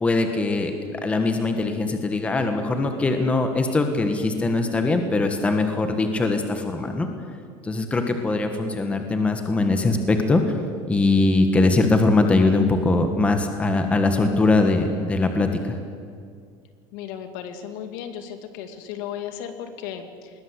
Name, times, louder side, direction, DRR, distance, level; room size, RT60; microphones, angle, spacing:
voice 1, 0.0-7.1 7.6-10.5 10.9-15.8, left 3 dB, 10° left, 5 dB, 1.4 m, -21 dB
voice 2, 16.9-20.3, left 9 dB, 70° left, 7 dB, 2.3 m, -35 dB
20.5 x 19.5 x 8.1 m, 2.2 s
cardioid pair, 175°, 12 cm